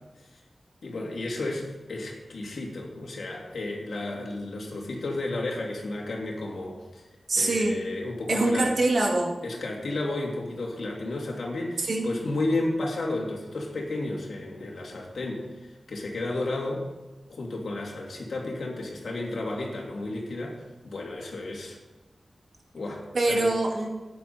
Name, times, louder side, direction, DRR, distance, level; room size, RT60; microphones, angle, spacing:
voice 1, 0.8-7.1 7.4-8.7 9.4-16.9 17.3-21.8 22.7-23.5, left 2 dB, 85° left, -1 dB, 2.8 m, -32 dB
voice 2, 7.3-7.8 8.3-9.3 11.8-12.1 23.1-23.9, right 2 dB, 70° right, 0 dB, 2.3 m, -24 dB
14.0 x 10.0 x 4.3 m, 1.2 s
wide cardioid pair, 75°, 0 cm